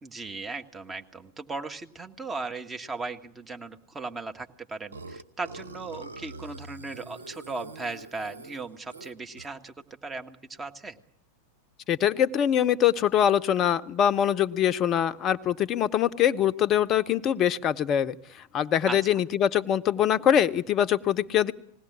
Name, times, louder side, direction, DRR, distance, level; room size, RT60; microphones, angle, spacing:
voice 1, 0.0-9.7 10.0-11.0 18.9-19.0, right 3 dB, 15° right, 6 dB, 1.6 m, -37 dB
Burping eructation, 4.9-9.7, right 3 dB, 75° right, 0.9 m, -44 dB
voice 2, 11.9-18.2 18.5-21.5, left 10 dB, 30° left, 15 dB, 0.8 m, -23 dB
20.5 x 17.0 x 10.0 m, 0.70 s
figure-of-eight pair, 90°, 0 cm